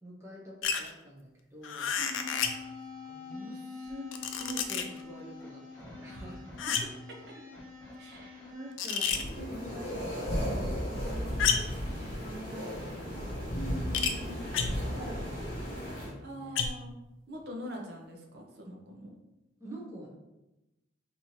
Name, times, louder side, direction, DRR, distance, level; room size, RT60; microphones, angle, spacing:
voice 1, 0.0-1.9 3.0-5.6 5.9-6.5 8.4-9.1 9.5-11.7 12.2-13.5 14.8-16.7 19.6-20.1, right 1 dB, 15° right, -5 dB, 0.7 m, -46 dB
sound 1, 0.6-0.9 1.6-2.6 3.9-5.0 6.6-7.0 8.8-9.3 11.4-11.8 13.9-14.2 14.5-14.9 16.6-16.9, left 6 dB, 80° left, 0.4 m, -30 dB
voice 2, 1.9-2.3 6.1-6.2 8.0-8.4 9.4-9.8 13.5-14.5 16.2-16.9 17.3-19.2, equal, 55° right, 0 dB, 0.7 m, -43 dB
sound 2, 2.2-8.7, left 4 dB, 15° left, 1.3 m, -45 dB
sound 3, 9.1-16.1, equal, 35° left, 1.5 m, -35 dB
4.1 x 2.7 x 3.0 m, 0.98 s
head